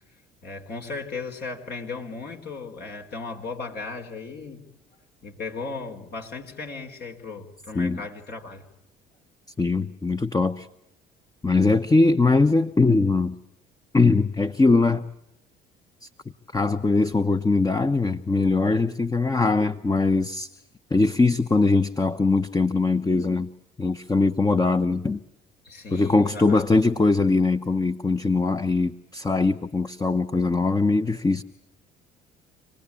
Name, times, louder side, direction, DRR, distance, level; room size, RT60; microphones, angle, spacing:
voice 1, 0.4-4.6 5.2-8.6 25.6-26.6, left 4 dB, 55° left, 3 dB, 4.4 m, -36 dB
voice 2, 9.6-10.7 11.4-13.3 13.9-15.0 16.0-16.1 16.5-20.5 20.9-23.5 23.8-25.2 25.9-31.4, left 3 dB, 20° left, 9 dB, 1.1 m, -21 dB
27.5 x 19.0 x 8.6 m, 0.87 s
hypercardioid pair, 60°, 20 cm